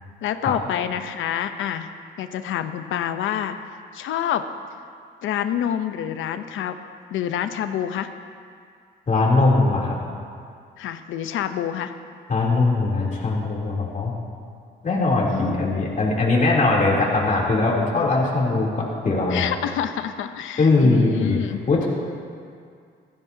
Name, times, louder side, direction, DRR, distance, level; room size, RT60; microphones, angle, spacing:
voice 1, 0.2-1.9 2.2-3.6 3.9-4.5 5.2-6.7 7.1-8.1 10.8-11.9 15.3-15.6 19.3-21.6, left 10 dB, 80° left, 9 dB, 0.7 m, -27 dB
voice 2, 9.1-9.9 12.3-14.1 14.8-19.4 20.6-21.4 21.7-21.9, left 3 dB, 40° left, -4 dB, 3.2 m, -20 dB
16.5 x 14.0 x 2.8 m, 2.3 s
cardioid pair, 90°, 20 cm